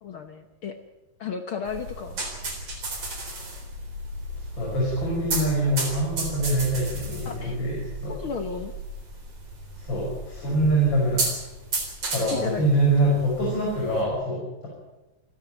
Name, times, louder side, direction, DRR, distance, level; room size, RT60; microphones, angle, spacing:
voice 1, 0.0-0.8 1.2-2.2 7.2-7.6 8.1-8.7 12.3-12.7 13.0-13.1, left 6 dB, 75° left, 6 dB, 1.2 m, -34 dB
sound 1, 1.7-14.1, right 2 dB, 45° right, 4.8 m, -34 dB
voice 2, 4.5-8.2 9.8-11.3 12.1-14.7, right 1 dB, 30° left, -4 dB, 6.7 m, -24 dB
28.0 x 10.5 x 9.0 m, 1.0 s
omnidirectional pair, 3.9 m